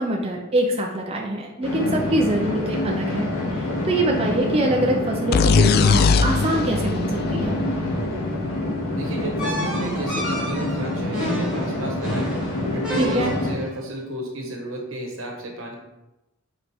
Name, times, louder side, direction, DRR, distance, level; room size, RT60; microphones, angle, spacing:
voice 1, 0.0-3.3 3.8-7.1 7.3-7.5 13.0-13.3, right 1 dB, 30° right, 0 dB, 0.6 m, -24 dB
sound 1, 1.6-13.5, left 1 dB, 80° left, 2.1 m, -27 dB
sound 2, 5.3-9.0, left 5 dB, 50° left, 0.3 m, -21 dB
voice 2, 8.9-12.3 12.7-15.7, right 1 dB, 80° right, 1 dB, 1.4 m, -31 dB
sound 3, 9.4-13.7, left 1 dB, 5° right, 1.9 m, -31 dB
5.1 x 4.4 x 4.4 m, 0.96 s
head